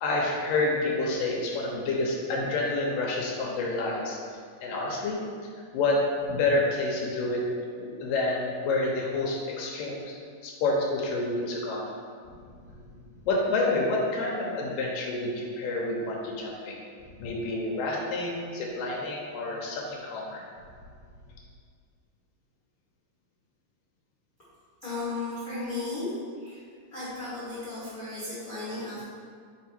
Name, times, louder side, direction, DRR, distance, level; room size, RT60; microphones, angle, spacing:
voice 1, 0.0-4.2 4.6-5.2 5.7-6.0 6.3-7.4 7.8-10.1 10.4-11.8 13.3-16.8 17.2-20.4, left 2 dB, 85° left, -2 dB, 2.5 m, -28 dB
voice 2, 24.8-26.1 26.4-26.6 26.9-29.0, left 3 dB, 45° left, -10 dB, 1.1 m, -35 dB
5.1 x 4.7 x 4.3 m, 2.1 s
omnidirectional pair, 3.8 m